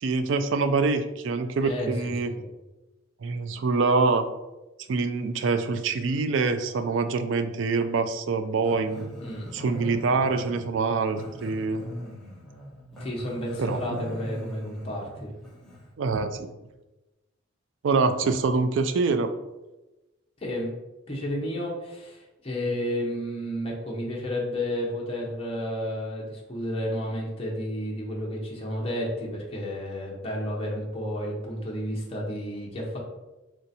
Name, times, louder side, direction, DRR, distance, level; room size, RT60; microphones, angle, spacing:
voice 1, 0.0-2.3 3.2-4.3 4.9-9.1 9.5-11.9 13.6-13.8 16.0-16.5 17.8-19.3, right 4 dB, 70° right, 9 dB, 0.4 m, -25 dB
Growling, 8.6-15.9, equal, 5° left, 0.9 m, -41 dB
voice 2, 13.0-15.3 20.4-20.7 21.1-33.0, equal, 30° left, -3 dB, 0.8 m, -31 dB
3.3 x 2.7 x 4.0 m, 1.0 s
head